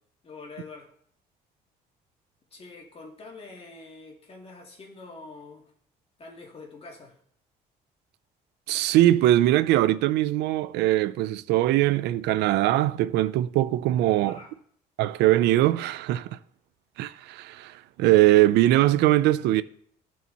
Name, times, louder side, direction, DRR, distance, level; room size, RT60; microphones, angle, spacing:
voice 1, 0.2-0.9 2.5-5.7 6.2-7.2 14.2-14.5, left 3 dB, 35° left, 2.4 m, -45 dB
voice 2, 8.7-14.4 15.0-16.3 17.0-19.6, right 15 dB, 85° right, 0.5 m, -21 dB
13.5 x 4.7 x 4.1 m
cardioid pair, 110°, 17 cm